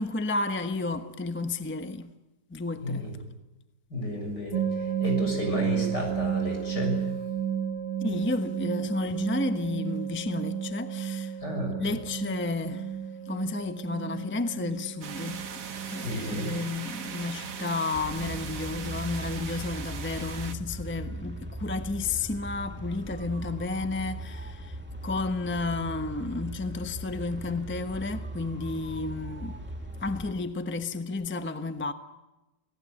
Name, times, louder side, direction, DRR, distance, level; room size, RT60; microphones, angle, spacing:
voice 1, 0.0-2.1 2.5-3.1 8.0-11.4 11.8-12.9 13.3-15.4 15.9-29.6 30.0-31.9, left 3 dB, 10° left, 0.8 m, -32 dB
voice 2, 3.9-7.1 11.4-12.0 16.0-16.5, left 1 dB, 70° left, 7.8 m, -32 dB
sound 1, 4.5-19.4, right 8 dB, 80° right, 2.4 m, -33 dB
sound 2, 15.0-20.5, right 6 dB, 55° right, 1.6 m, -40 dB
sound 3, 17.9-30.3, equal, 5° right, 2.0 m, -39 dB
28.5 x 18.5 x 9.6 m
omnidirectional pair, 1.8 m